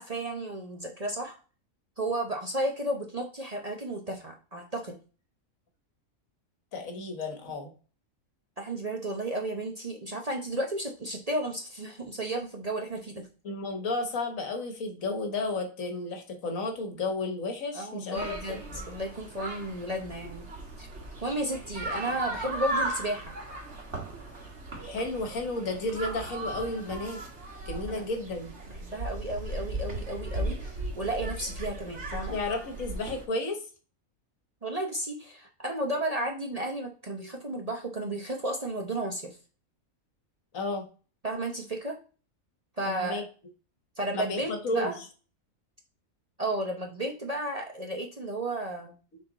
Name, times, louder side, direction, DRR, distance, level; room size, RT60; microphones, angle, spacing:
voice 1, 0.0-1.4 2.0-5.0 8.6-13.3 17.7-18.6 18.9-20.5 20.8-20.9 21.2-23.3 27.9-28.1 28.8-32.3 34.6-39.4 41.2-42.0 42.8-43.2 44.0-45.0 46.4-48.9, right 1 dB, 30° right, 1 dB, 0.8 m, -33 dB
voice 2, 6.7-7.7 13.4-18.8 24.8-27.2 27.7-28.5 32.3-33.6 40.5-40.8 42.9-43.2 44.1-44.9 49.1-49.2, left 2 dB, 70° left, 5 dB, 1.6 m, -33 dB
sound 1, 18.1-33.2, right 1 dB, 55° right, 1.8 m, -37 dB
6.7 x 3.9 x 3.9 m, 0.36 s
omnidirectional pair, 1.5 m